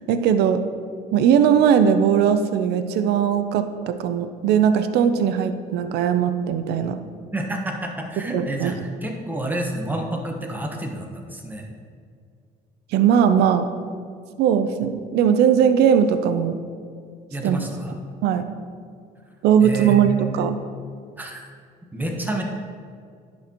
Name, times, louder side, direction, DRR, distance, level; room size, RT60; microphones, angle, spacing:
voice 1, 0.1-0.6 1.1-7.0 8.3-8.7 12.9-13.7 14.4-16.6 17.4-17.6 18.2-18.4 19.4-20.6, right 8 dB, 75° right, 10 dB, 0.5 m, -19 dB
voice 2, 7.3-11.7 17.3-18.0 19.6-20.5 21.2-21.4 21.9-22.4, right 1 dB, 10° right, 1 dB, 1.1 m, -29 dB
10.5 x 6.3 x 2.9 m, 2.2 s
cardioid pair, 110°, 17 cm